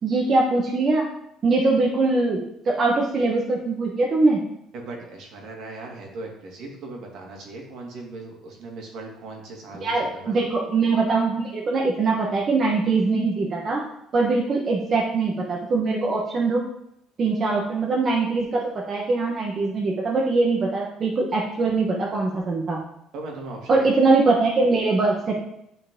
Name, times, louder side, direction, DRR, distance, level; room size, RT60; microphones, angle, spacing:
voice 1, 0.0-1.1 1.4-2.4 2.6-4.4 9.8-13.8 14.1-16.6 17.2-22.8 23.7-25.3, right 3 dB, 35° right, -2 dB, 1.3 m, -22 dB
voice 2, 4.7-10.4 23.1-23.9, right 2 dB, 65° right, 0 dB, 2.2 m, -38 dB
9.5 x 4.7 x 3.8 m, 0.76 s
cardioid pair, 130°, 0 cm